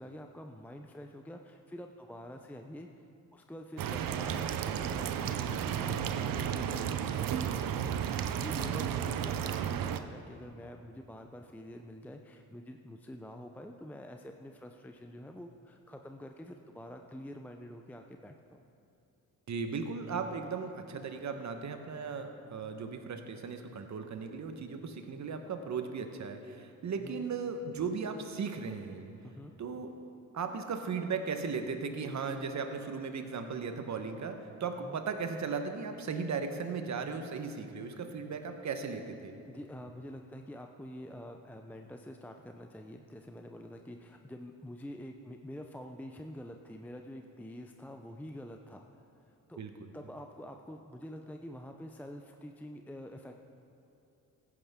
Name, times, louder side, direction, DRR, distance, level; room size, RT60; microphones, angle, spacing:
voice 1, 0.0-3.1 3.3-18.6 27.0-27.3 29.2-29.5 34.8-35.0 39.4-49.6 49.9-53.4, left 1 dB, 5° left, 4 dB, 0.6 m, -47 dB
sound 1, 3.8-10.0, right 9 dB, 65° right, 0.7 m, -33 dB
voice 2, 19.5-29.1 29.6-29.9 30.3-39.4 49.6-49.9, right 5 dB, 50° right, 6 dB, 1.2 m, -37 dB
16.0 x 9.9 x 3.7 m, 2.8 s
cardioid pair, 80°, 36 cm